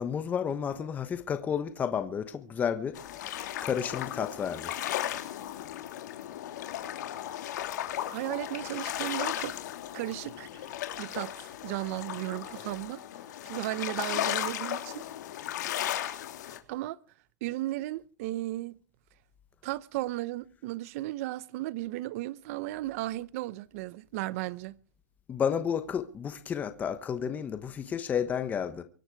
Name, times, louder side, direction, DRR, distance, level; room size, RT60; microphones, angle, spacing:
voice 1, 0.0-3.0 3.6-4.7 25.3-28.8, left 7 dB, 15° left, 1.1 m, -31 dB
sound 1, 2.9-16.6, left 12 dB, 75° left, 3.2 m, -36 dB
voice 2, 8.1-9.5 9.9-10.7 11.0-13.0 13.5-15.1 16.7-17.0 17.4-18.8 19.6-24.8, right 17 dB, 50° right, 0.8 m, -35 dB
24.0 x 12.0 x 4.7 m
supercardioid pair, 160°, 10 cm